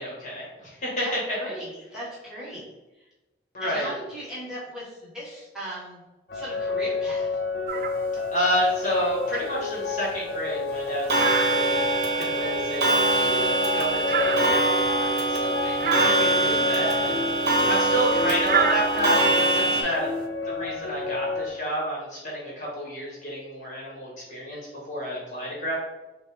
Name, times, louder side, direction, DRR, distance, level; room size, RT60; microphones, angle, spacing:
voice 1, 0.0-1.4 3.5-3.9 8.3-20.1 20.4-25.8, equal, 45° left, -4 dB, 1.3 m, -30 dB
voice 2, 1.0-2.7 3.0-3.1 3.6-6.0 6.3-7.4 16.3-16.7 17.5-17.9 19.5-19.9, right 1 dB, 5° right, -8 dB, 1.4 m, -38 dB
sound 1, 6.3-21.5, left 4 dB, 60° left, 0.6 m, -30 dB
sound 2, 7.7-8.1 8.4-10.9 11.1-12.4 12.7-15.4 15.7-16.8 17.0-20.0, right 6 dB, 50° right, 0.3 m, -31 dB
Clock, 11.1-19.8, right 2 dB, 70° right, 0.7 m, -23 dB
5.2 x 2.2 x 3.4 m, 1.0 s
head